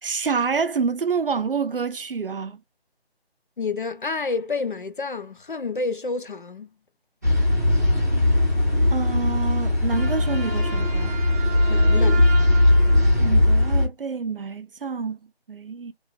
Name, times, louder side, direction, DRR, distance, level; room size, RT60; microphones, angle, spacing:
voice 1, 0.0-2.6 8.9-11.1 13.2-15.9, right 5 dB, 60° right, 0.5 m, -27 dB
voice 2, 3.6-6.7 11.7-12.2, left 4 dB, 55° left, 0.4 m, -29 dB
sound 1, 7.2-13.9, left 1 dB, 15° right, 0.7 m, -19 dB
3.0 x 2.3 x 2.4 m
figure-of-eight pair, 170°, 32 cm